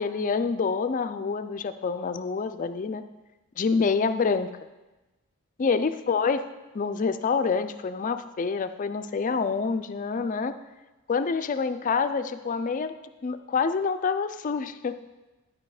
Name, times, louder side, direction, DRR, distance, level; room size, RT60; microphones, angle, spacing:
voice 1, 0.0-3.0 3.6-4.5 5.6-6.4 6.7-10.6 11.1-12.9 13.2-15.0, left 5 dB, 35° left, 10 dB, 0.3 m, -27 dB
11.5 x 5.0 x 4.8 m, 1.1 s
head